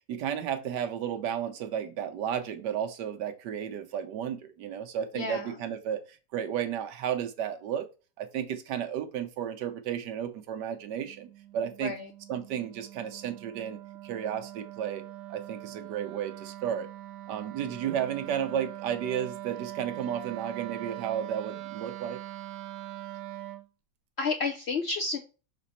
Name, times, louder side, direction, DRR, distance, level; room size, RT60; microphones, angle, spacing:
voice 1, 0.1-7.9 8.2-11.3 11.5-11.9 12.3-13.8 14.0-15.0 15.3-16.9 17.3-22.2, right 9 dB, 90° right, 1.4 m, -33 dB
voice 2, 5.1-5.6 11.8-12.1 24.2-25.2, left 4 dB, 65° left, 0.6 m, -31 dB
Wind instrument woodwind instrument, 10.7-23.7, right 14 dB, 65° right, 0.9 m, -42 dB
6.1 x 4.0 x 4.2 m
omnidirectional pair, 1.8 m